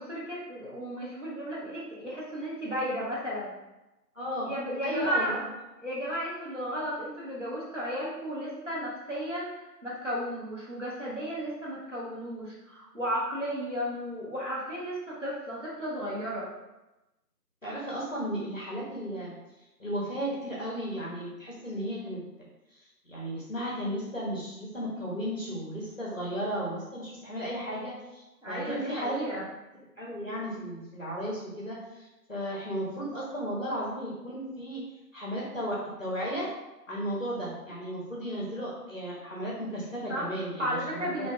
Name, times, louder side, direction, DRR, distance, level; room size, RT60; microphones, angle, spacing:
voice 1, 0.0-3.5 4.4-5.4 5.8-9.5 9.8-16.5 28.4-29.5 40.1-40.2 40.6-41.3, equal, 50° right, -7 dB, 0.7 m, -34 dB
voice 2, 4.1-4.5 4.8-5.4 17.6-19.3 19.8-22.2 23.0-29.4 30.0-34.8 35.1-36.5 36.9-41.1, equal, 55° left, -6 dB, 0.7 m, -34 dB
2.4 x 2.2 x 2.3 m, 1.0 s
figure-of-eight pair, 175°, 50 cm